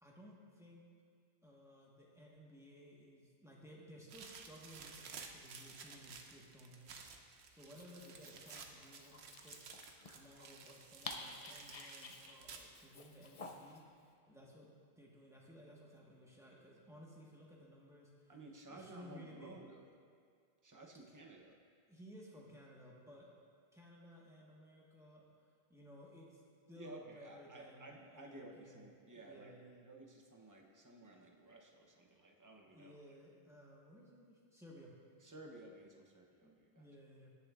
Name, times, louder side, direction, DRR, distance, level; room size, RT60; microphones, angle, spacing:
voice 1, 0.0-0.8 1.4-6.9 7.5-9.8 10.1-14.7 15.0-18.3 18.7-19.6 21.9-23.3 23.7-25.2 25.7-26.4 26.7-29.9 32.7-34.9 36.4-37.3, equal, 5° right, -4 dB, 1.3 m, -57 dB
sound 1, 4.1-12.9, right 5 dB, 85° right, 1.0 m, -54 dB
Dog, 7.6-13.8, left 3 dB, 40° left, 0.6 m, -52 dB
voice 2, 18.3-19.8 20.6-21.6 26.7-29.6 29.8-33.2 35.2-36.9, right 2 dB, 20° right, 1 dB, 0.8 m, -55 dB
18.0 x 6.9 x 2.5 m, 2.2 s
omnidirectional pair, 1.1 m